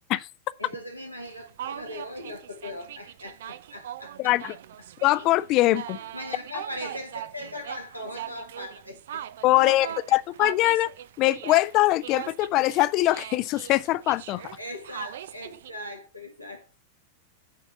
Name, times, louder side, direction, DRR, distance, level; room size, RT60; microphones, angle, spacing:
voice 1, 0.6-4.4 5.9-9.2 9.5-10.2 14.6-16.7, left 1 dB, 90° right, 1.7 m, -39 dB
sound 1, 1.3-15.7, right 11 dB, 60° right, 0.4 m, -41 dB
voice 2, 4.2-4.5 5.0-6.0 9.4-10.9 11.2-14.4, left 17 dB, 40° left, 0.5 m, -22 dB
9.2 x 4.2 x 6.2 m
figure-of-eight pair, 90°, 0 cm